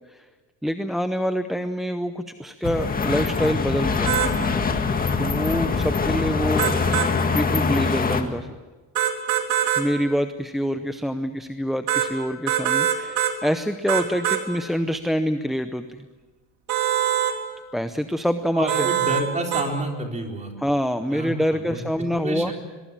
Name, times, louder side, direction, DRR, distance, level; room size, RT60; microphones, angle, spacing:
voice 1, 0.6-4.2 5.2-7.0 7.3-8.6 9.8-16.1 17.7-18.9 20.6-22.5, equal, ahead, 9 dB, 0.6 m, -26 dB
sound 1, 2.6-8.2, left 4 dB, 20° left, 1.9 m, -23 dB
sound 2, 4.1-4.3 6.6-7.1 9.0-9.9 11.9-12.1 12.5-13.4 13.9-14.4 16.7-17.4 18.7-19.3 19.5-19.7, right 11 dB, 75° right, 3.6 m, -23 dB
voice 2, 18.5-20.5 21.1-21.8 22.2-22.5, right 2 dB, 20° right, 2 dB, 4.0 m, -29 dB
22.5 x 22.5 x 7.5 m, 1.3 s
cardioid pair, 155°, 39 cm